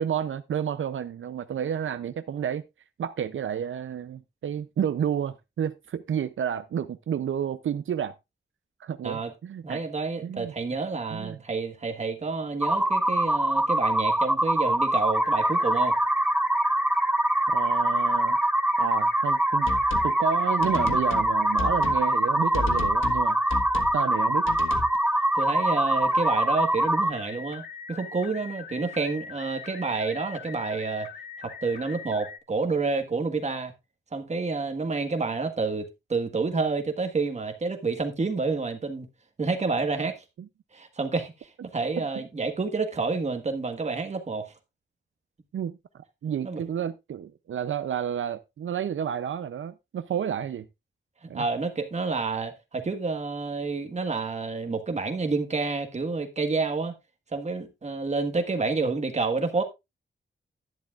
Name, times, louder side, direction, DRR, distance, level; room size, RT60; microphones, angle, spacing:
voice 1, 0.0-2.6 3.0-8.1 8.8-9.8 10.2-10.8 11.1-11.4 17.5-18.4 18.8-19.7 20.0-23.4 23.9-24.5 40.4-40.5 45.5-45.8 46.2-50.7 51.3-51.4, right 8 dB, 80° right, 0.6 m, -30 dB
voice 2, 9.6-16.0 25.3-27.6 27.9-31.1 31.4-33.7 34.1-35.8 36.1-39.1 39.4-40.2 40.7-44.5 46.4-46.6 51.2-56.9 57.3-59.6, right 4 dB, 35° right, 1.5 m, -29 dB
sound 1, 12.6-27.1, right 1 dB, 5° right, 0.5 m, -24 dB
sound 2, 15.1-32.4, left 5 dB, 50° left, 1.6 m, -42 dB
sound 3, 19.7-20.2 20.6-21.3 21.6-22.0 22.5-23.2 23.5-24.0 24.5-25.0, left 4 dB, 90° left, 1.5 m, -33 dB
11.0 x 10.5 x 2.4 m
wide cardioid pair, 145°, 20 cm